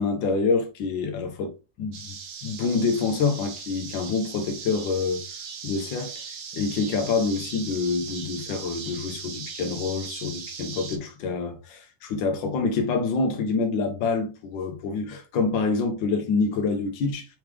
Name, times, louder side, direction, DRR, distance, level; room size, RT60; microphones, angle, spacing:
voice 1, 0.0-2.2 2.4-5.2 5.6-6.1 6.5-17.3, left 4 dB, 80° left, 1.6 m, -26 dB
sound 1, 1.9-11.0, right 6 dB, 70° right, 1.4 m, -39 dB
4.8 x 3.2 x 3.3 m
omnidirectional pair, 2.0 m